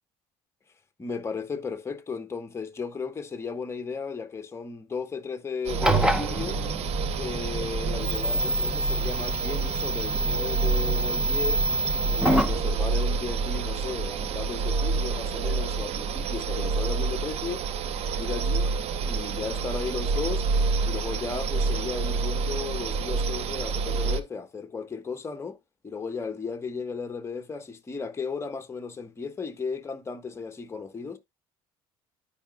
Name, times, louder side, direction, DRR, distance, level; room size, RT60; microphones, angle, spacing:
voice 1, 1.0-6.6 7.2-11.7 11.9-17.6 18.1-18.7 19.1-20.4 20.9-25.6 25.8-31.2, left 5 dB, 20° left, 1.3 m, -35 dB
sound 1, 5.6-24.2, right 4 dB, 55° right, 0.9 m, -28 dB
sound 2, 5.7-12.6, right 1 dB, 5° right, 0.9 m, -27 dB
12.5 x 5.0 x 2.3 m
cardioid pair, 105°, 12 cm